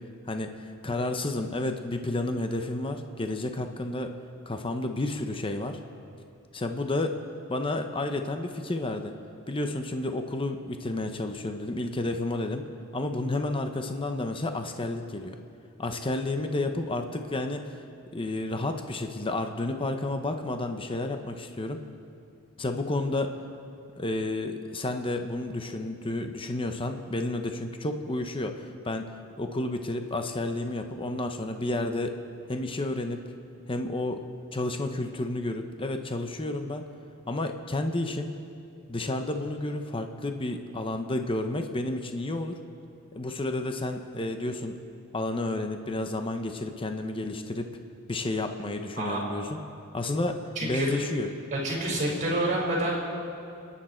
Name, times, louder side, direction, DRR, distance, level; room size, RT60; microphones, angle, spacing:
voice 1, 0.3-4.1 4.5-5.8 6.5-7.1 7.5-9.1 9.5-12.7 12.9-15.4 15.8-17.8 18.1-21.8 22.6-23.3 24.0-29.1 29.4-32.1 32.5-33.2 33.7-34.2 34.5-36.8 37.3-38.3 38.9-42.6 43.1-44.8 45.1-47.7 48.1-49.6 49.9-51.3, left 2 dB, 25° left, 6 dB, 0.8 m, -31 dB
voice 2, 50.5-51.0 51.5-53.0, right 1 dB, 35° right, -3 dB, 4.7 m, -28 dB
29.0 x 10.0 x 4.4 m, 2.5 s
head